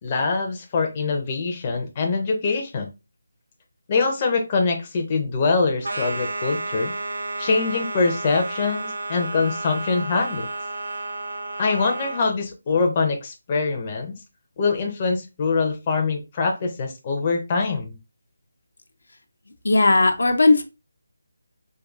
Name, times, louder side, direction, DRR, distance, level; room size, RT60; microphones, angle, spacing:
voice 1, 0.0-2.9 3.9-6.9 7.4-10.5 11.6-14.1 14.6-18.0, left 4 dB, 30° left, 3 dB, 0.6 m, -24 dB
sound 1, 5.8-12.3, right 2 dB, 70° right, 0.7 m, -31 dB
voice 2, 19.6-20.6, left 3 dB, 70° left, 5 dB, 0.6 m, -17 dB
3.8 x 2.6 x 2.3 m, 0.27 s
figure-of-eight pair, 160°, 0 cm